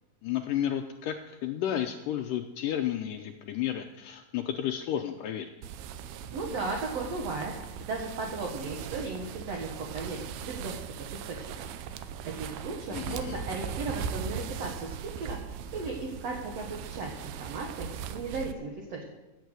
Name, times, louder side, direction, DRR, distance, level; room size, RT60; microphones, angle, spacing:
voice 1, 0.2-5.5 12.9-13.4, left 11 dB, 85° left, 5 dB, 1.9 m, -32 dB
sound 1, 5.6-18.5, right 8 dB, 80° right, 2.7 m, -39 dB
voice 2, 6.3-10.8 11.1-12.0 12.4-15.4 15.7-19.0, right 3 dB, 55° right, 0 dB, 2.1 m, -36 dB
15.0 x 8.4 x 8.1 m, 1.1 s
omnidirectional pair, 4.6 m